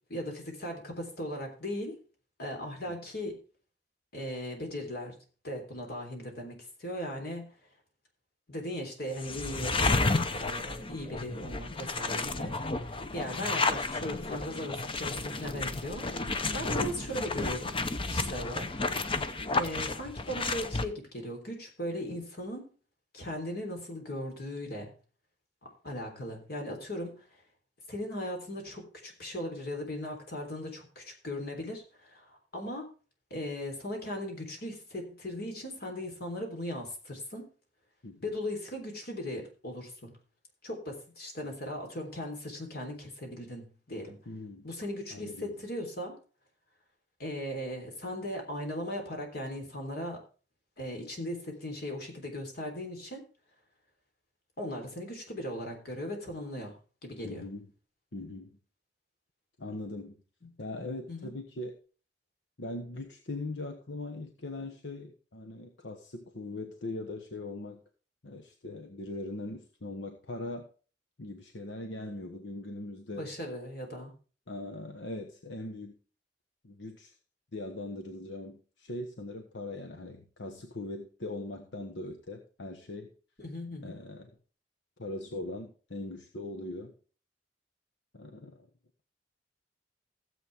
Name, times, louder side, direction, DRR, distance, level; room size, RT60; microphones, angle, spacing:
voice 1, 0.1-2.0 2.4-3.4 4.1-5.2 5.4-7.6 8.5-17.8 18.1-18.7 19.2-22.7 23.1-24.9 25.8-27.3 27.9-32.9 33.3-37.5 38.2-40.1 40.6-44.2 44.6-46.2 47.2-50.2 50.8-53.3 54.6-56.8 57.0-57.5 61.1-61.3 73.2-74.1 83.4-84.0, left 1 dB, 60° left, 3 dB, 3.5 m, -38 dB
sound 1, 9.2-20.8, left 3 dB, 30° left, 0.7 m, -32 dB
voice 2, 9.6-9.9 16.2-16.7 38.0-38.4 44.2-44.7 45.1-45.7 57.2-57.7 58.1-58.5 59.6-60.2 60.6-61.8 62.6-67.8 68.2-70.7 71.2-73.3 74.5-76.0 76.6-77.1 77.5-83.1 83.8-84.4 85.0-86.9 88.1-88.7, left 2 dB, 90° left, 4 dB, 1.2 m, -40 dB
15.5 x 7.9 x 3.5 m, 0.37 s
head